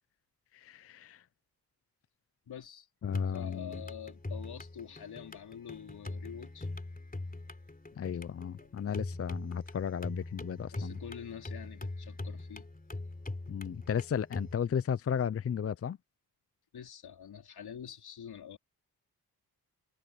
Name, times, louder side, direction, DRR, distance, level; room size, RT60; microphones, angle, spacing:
voice 1, 0.5-1.2 3.0-3.8 8.0-11.0 13.5-16.0, left 8 dB, 40° left, 0.6 m, -34 dB
voice 2, 2.5-2.9 3.3-6.7 8.6-8.7 10.7-12.7 16.7-18.6, left 8 dB, 75° left, 4.3 m, -46 dB
sound 1, 3.0-14.5, left 2 dB, 20° left, 3.6 m, -41 dB
cardioid pair, 55°, 38 cm